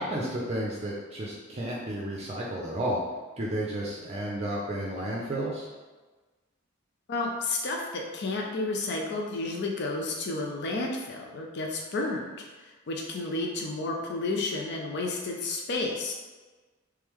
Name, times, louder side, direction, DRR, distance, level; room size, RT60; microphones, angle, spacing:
voice 1, 0.0-3.0 3.4-5.7, right 1 dB, 30° right, -4 dB, 0.5 m, -32 dB
voice 2, 7.1-12.3 12.6-16.1, left 2 dB, 55° left, 0 dB, 0.5 m, -31 dB
3.3 x 3.2 x 3.5 m, 1.3 s
head